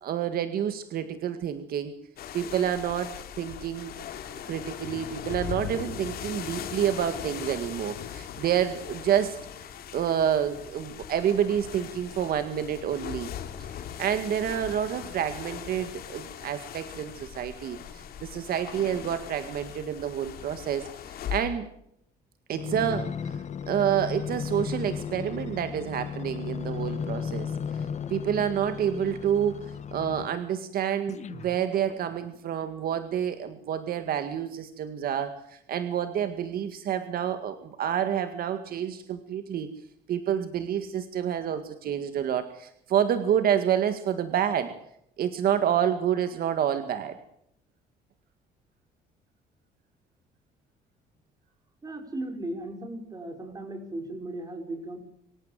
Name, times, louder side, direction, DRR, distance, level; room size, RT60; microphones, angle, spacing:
voice 1, 0.0-1.9 2.3-3.9 4.5-9.4 9.9-13.3 13.6-21.7 22.5-23.4 23.7-27.8 28.1-39.7 40.1-44.7 45.2-47.2, right 9 dB, 60° right, 9 dB, 2.0 m, -28 dB
sound 1, 2.2-21.4, left 9 dB, 65° left, 3.1 m, -40 dB
sound 2, 22.5-30.5 31.1-32.4 33.0-33.1, left 7 dB, 45° left, 1.4 m, -35 dB
voice 2, 51.8-55.0, right 1 dB, 20° right, 6 dB, 6.1 m, -36 dB
25.5 x 14.5 x 7.6 m, 0.73 s
cardioid pair, 110°, 17 cm